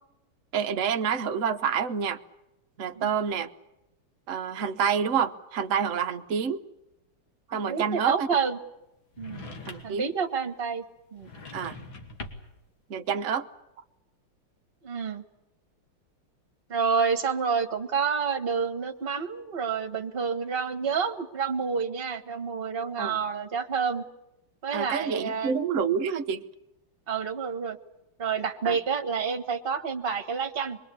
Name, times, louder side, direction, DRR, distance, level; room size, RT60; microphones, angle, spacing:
voice 1, 0.5-2.2 2.8-3.5 4.3-6.6 7.5-8.3 9.7-10.1 11.5-11.8 12.9-13.5 23.0-23.2 24.7-26.4 28.6-28.8, right 7 dB, 45° right, 1.1 m, -28 dB
voice 2, 7.5-8.6 9.2-9.5 9.8-10.8 11.1-11.3 14.8-15.2 16.7-24.0 24.6-25.6 27.1-27.8 28.2-30.8, right 6 dB, 30° right, 1.5 m, -29 dB
sound 1, 9.1-10.1 11.2-12.6, left 3 dB, 65° left, 3.0 m, -42 dB
25.0 x 22.5 x 8.5 m
omnidirectional pair, 2.4 m